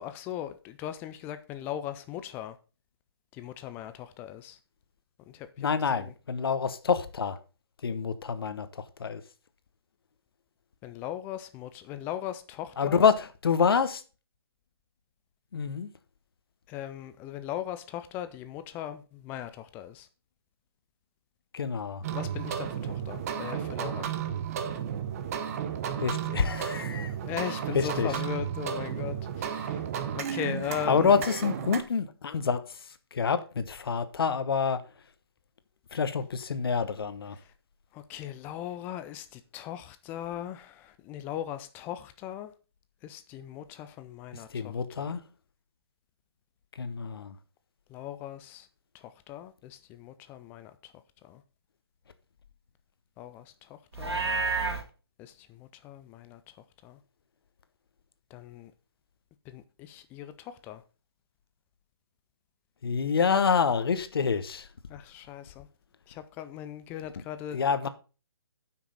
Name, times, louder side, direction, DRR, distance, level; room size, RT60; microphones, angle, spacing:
voice 1, 0.0-2.6 3.3-4.6 5.3-5.7 5.9-6.1 10.8-13.0 16.7-20.1 22.1-24.1 27.1-29.9 30.1-31.2 37.3-37.5 37.9-42.5 43.0-45.1 47.9-48.7 48.9-50.9 51.2-51.4 53.2-54.2 55.2-56.4 56.8-57.0 58.3-58.7 59.5-60.8 64.9-65.7 66.1-67.6, left 11 dB, 15° left, 0.4 m, -39 dB
voice 2, 5.6-7.4 7.8-9.2 12.8-14.0 15.5-15.9 21.5-22.0 26.0-27.2 27.7-28.1 30.8-34.8 35.9-37.4 44.3-45.2 46.7-47.4 62.8-64.7 67.5-67.9, left 6 dB, 65° left, 1.1 m, -27 dB
sound 1, 22.0-31.8, right 8 dB, 35° right, 1.0 m, -33 dB
Livestock farm animals working animals, 53.9-54.8, right 4 dB, 85° right, 2.7 m, -29 dB
8.6 x 6.0 x 5.4 m
hypercardioid pair, 150°, 13 cm